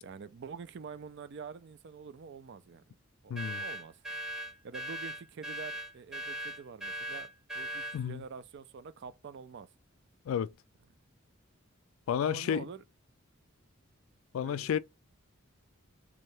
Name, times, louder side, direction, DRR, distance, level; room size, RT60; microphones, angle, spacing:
voice 1, 0.0-2.8 3.2-4.2 4.6-7.3 7.5-9.7 12.2-12.8 14.4-14.8, right 5 dB, 55° right, 0.4 m, -46 dB
voice 2, 3.3-3.6 7.9-8.2 10.3-10.5 12.1-12.6 14.3-14.8, left 8 dB, 75° left, 0.3 m, -31 dB
sound 1, 3.4-8.0, right 2 dB, ahead, 0.7 m, -39 dB
3.7 x 2.8 x 3.2 m
head